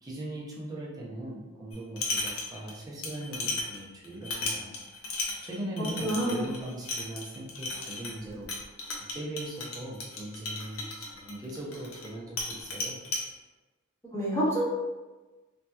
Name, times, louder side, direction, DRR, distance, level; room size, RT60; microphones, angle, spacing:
voice 1, 0.0-4.8 5.4-8.5 9.0-13.0, right 1 dB, 15° right, -4 dB, 0.6 m, -39 dB
sound 1, 1.7-2.7 3.0-12.1 12.4-13.2, left 2 dB, 70° left, 0.6 m, -35 dB
voice 2, 6.0-6.4 14.1-14.7, right 1 dB, 15° left, -8 dB, 1.0 m, -27 dB
3.2 x 2.8 x 2.3 m, 1.2 s
head